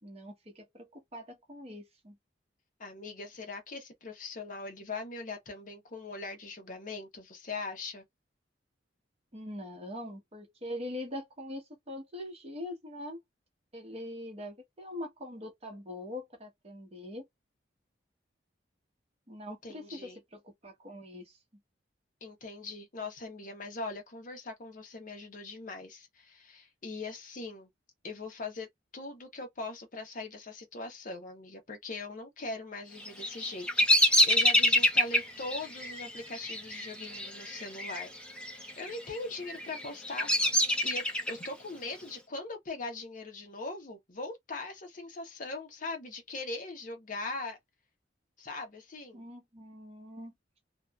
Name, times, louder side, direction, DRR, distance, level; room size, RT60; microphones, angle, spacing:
voice 1, 0.0-2.2 9.3-13.2 13.7-17.2 19.3-21.4 49.1-50.3, left 1 dB, 35° right, 0.9 m, -43 dB
voice 2, 2.8-8.0 19.6-20.2 22.2-27.7 28.0-38.1 38.5-47.6 48.4-49.2, left 3 dB, 45° left, 0.8 m, -41 dB
Bird vocalization bird call bird song, 33.0-38.0 38.3-38.9 39.5-41.5, left 1 dB, 5° left, 0.5 m, -26 dB
2.8 x 2.3 x 2.2 m
head